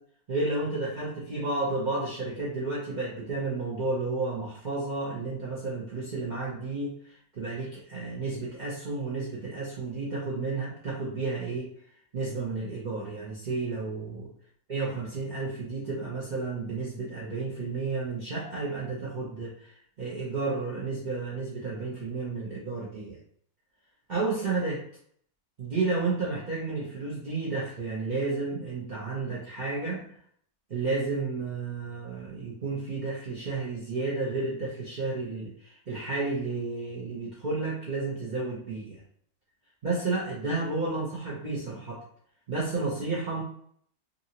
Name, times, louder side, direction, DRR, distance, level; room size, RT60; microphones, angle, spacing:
voice 1, 0.3-11.7 12.1-14.3 14.7-23.2 24.1-24.8 25.6-30.1 30.7-39.0 39.8-42.0 42.5-43.4, right 3 dB, 50° right, -7 dB, 0.5 m, -32 dB
2.6 x 2.6 x 2.8 m, 0.63 s
omnidirectional pair, 1.6 m